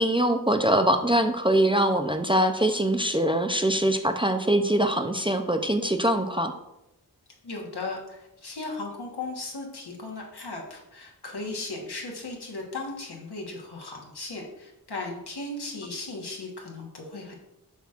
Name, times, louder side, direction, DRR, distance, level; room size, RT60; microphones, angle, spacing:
voice 1, 0.0-6.5, right 1 dB, 15° right, 7 dB, 0.4 m, -23 dB
voice 2, 7.4-17.3, left 3 dB, 80° left, -1 dB, 1.4 m, -36 dB
7.1 x 5.8 x 2.5 m, 0.88 s
wide cardioid pair, 60°, 39 cm